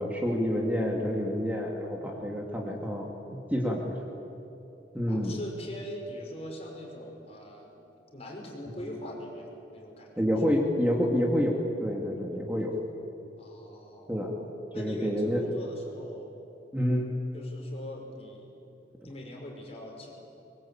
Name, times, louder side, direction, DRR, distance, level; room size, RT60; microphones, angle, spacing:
voice 1, 0.0-4.0 4.9-5.4 10.2-12.7 14.1-14.3 14.8-15.4 16.7-17.1, equal, 10° right, -1 dB, 2.4 m, -28 dB
voice 2, 5.1-7.9 8.1-10.1 13.4-14.2 14.7-16.4 17.3-18.6 19.0-20.1, equal, 35° left, -1 dB, 5.7 m, -42 dB
24.5 x 22.5 x 8.8 m, 2.8 s
head